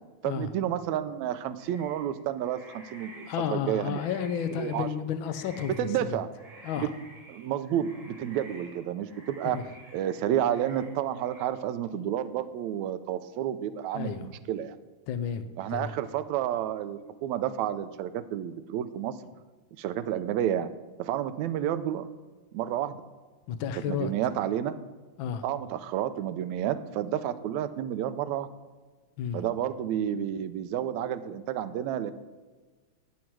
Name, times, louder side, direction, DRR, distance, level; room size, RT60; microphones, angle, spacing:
voice 1, 0.2-4.0 4.6-4.9 5.8-6.3 6.8-6.9 7.3-9.6 9.9-14.8 15.6-19.2 19.8-20.7 21.0-22.1 22.5-23.0 23.9-24.8 25.4-28.5 29.3-32.1, right 10 dB, 80° right, 11 dB, 1.9 m, -30 dB
sound 1, 1.6-4.9 5.2-6.0 6.3-11.4, right 2 dB, 40° right, 3.8 m, -51 dB
voice 2, 3.3-5.7 6.1-6.2 6.6-6.9 9.5-9.6 13.9-14.3 15.1-15.9 23.5-24.1 25.2-25.4 29.2-29.4, left 8 dB, 75° left, 10 dB, 1.1 m, -32 dB
19.0 x 7.5 x 4.7 m, 1.3 s
omnidirectional pair, 3.4 m